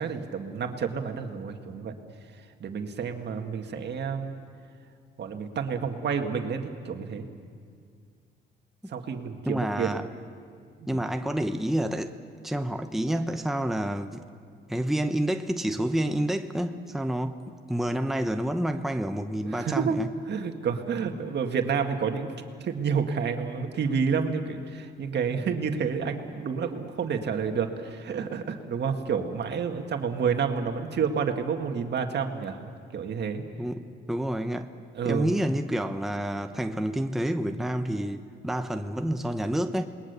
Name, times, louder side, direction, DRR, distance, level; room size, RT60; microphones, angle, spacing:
voice 1, 0.0-1.9 2.3-4.3 5.2-7.3 8.9-10.0 10.8-11.0 19.4-20.0 20.3-33.4 34.9-35.4, right 6 dB, 60° right, 5 dB, 2.0 m, -29 dB
voice 2, 9.5-10.0 10.9-12.2 12.4-14.3 14.7-20.1 33.6-34.7 35.0-39.9, right 1 dB, ahead, 7 dB, 0.9 m, -29 dB
28.0 x 21.0 x 6.9 m, 2.2 s
cardioid pair, 90°, 20 cm